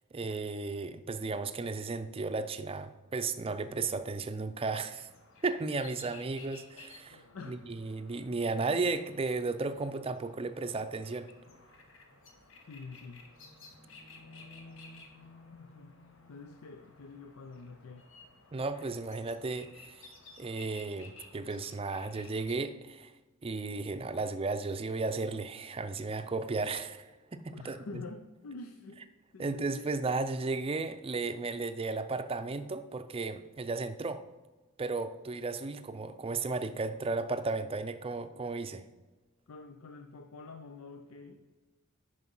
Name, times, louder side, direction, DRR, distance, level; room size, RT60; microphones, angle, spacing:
voice 1, 0.1-5.1 5.4-11.3 18.5-20.1 20.4-23.1 23.4-27.8 29.4-34.2 34.8-38.8, right 3 dB, 25° right, 10 dB, 0.5 m, -34 dB
sound 1, 5.1-22.6, left 3 dB, 65° left, 1.3 m, -55 dB
voice 2, 7.1-7.6 12.7-13.3 15.5-15.9 16.3-18.1 27.5-29.0 29.3-29.9 39.5-41.4, left 3 dB, 90° left, 6 dB, 0.6 m, -47 dB
9.8 x 5.2 x 5.4 m, 1.2 s
head